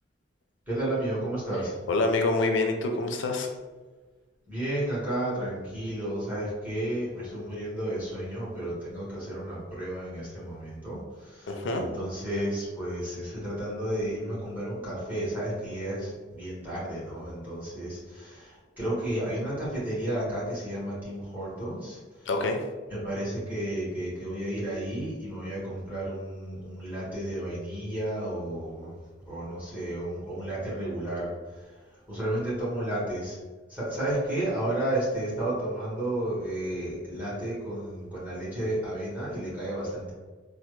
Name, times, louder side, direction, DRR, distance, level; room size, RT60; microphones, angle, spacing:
voice 1, 0.7-1.7 4.5-22.3 22.9-29.0 29.2-31.3 32.1-33.4 33.7-40.1, right 1 dB, 10° right, -9 dB, 1.3 m, -32 dB
voice 2, 1.9-3.5 11.5-11.8 22.3-22.6, left 2 dB, 85° left, 4 dB, 0.4 m, -26 dB
3.2 x 2.1 x 3.0 m, 1.3 s
head